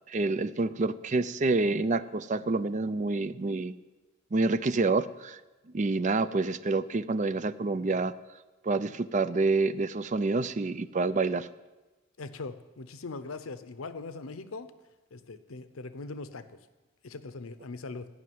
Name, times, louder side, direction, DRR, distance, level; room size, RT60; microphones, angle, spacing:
voice 1, 0.1-3.7 4.3-5.4 5.7-8.1 8.6-11.5, right 3 dB, 35° right, 14 dB, 0.4 m, -28 dB
voice 2, 12.2-14.7 15.1-16.6 17.0-18.1, left 3 dB, 85° left, 12 dB, 0.8 m, -41 dB
14.0 x 5.9 x 9.4 m, 1.1 s
head